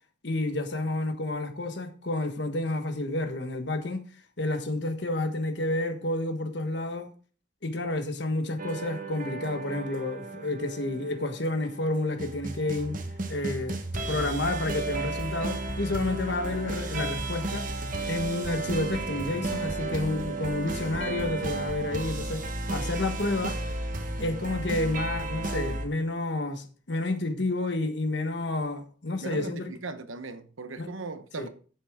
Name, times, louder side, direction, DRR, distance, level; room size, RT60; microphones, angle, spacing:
voice 1, 0.2-4.0 4.4-7.1 7.6-13.0 13.3-13.8 14.1-17.7 18.1-23.6 24.2-29.7 30.8-30.9 31.4-31.5, left 2 dB, 60° left, 1.3 m, -30 dB
sound 1, 8.6-25.9, right 2 dB, 40° right, 1.3 m, -33 dB
voice 2, 29.2-31.5, right 3 dB, 80° right, 1.0 m, -38 dB
10.0 x 8.0 x 3.6 m
head